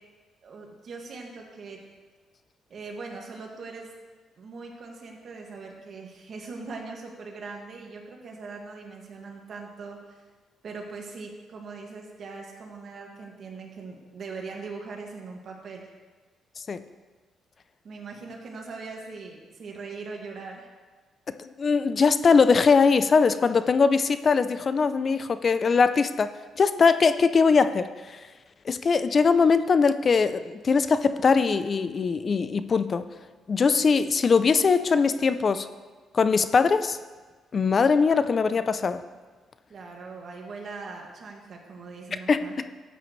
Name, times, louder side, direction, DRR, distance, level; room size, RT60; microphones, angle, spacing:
voice 1, 0.4-1.8 2.7-3.9 4.4-10.2 10.6-15.9 17.8-20.7 39.7-42.6, right 4 dB, 55° right, 0 dB, 2.0 m, -40 dB
voice 2, 21.4-26.3 26.6-28.2 28.7-33.0 33.5-35.7 36.1-37.0 37.5-39.0 42.3-42.7, left 5 dB, 40° left, 12 dB, 0.5 m, -21 dB
13.5 x 8.7 x 3.2 m, 1.4 s
cardioid pair, 90°, 0 cm